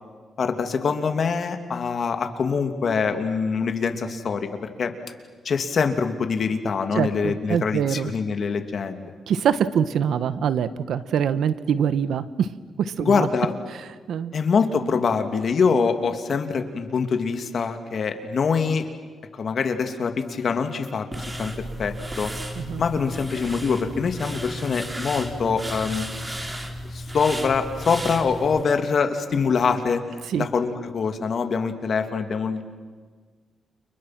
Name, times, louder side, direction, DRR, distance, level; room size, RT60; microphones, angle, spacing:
voice 1, 0.4-4.9 5.4-9.1 13.0-13.5 14.3-18.9 19.3-21.5 21.8-22.3 22.8-26.1 26.9-30.0 30.4-32.6, left 5 dB, 60° left, 6 dB, 2.8 m, -24 dB
voice 2, 6.9-8.1 9.3-12.5 12.8-13.3 13.7-13.8 14.1-14.3 22.5-22.8 30.3-30.5, right 8 dB, 80° right, 13 dB, 1.3 m, -24 dB
sound 1, 21.1-28.6, equal, 20° right, 3.6 m, -34 dB
30.0 x 30.0 x 6.1 m, 1.5 s
cardioid pair, 90°, 0 cm